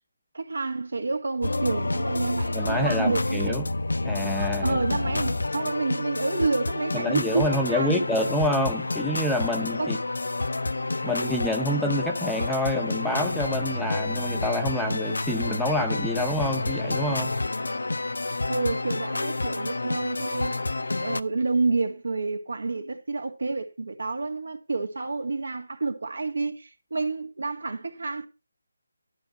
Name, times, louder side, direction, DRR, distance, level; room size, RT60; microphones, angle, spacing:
voice 1, 0.3-3.6 4.6-8.1 9.8-9.9 18.5-20.6 21.0-28.3, right 3 dB, 75° right, 1.9 m, -29 dB
sound 1, 1.4-21.2, left 2 dB, 80° left, 0.6 m, -29 dB
voice 2, 2.5-3.6 4.0-4.8 6.9-10.0 11.0-17.3, left 1 dB, ahead, 0.6 m, -27 dB
12.0 x 4.5 x 6.3 m
figure-of-eight pair, 165°, 0 cm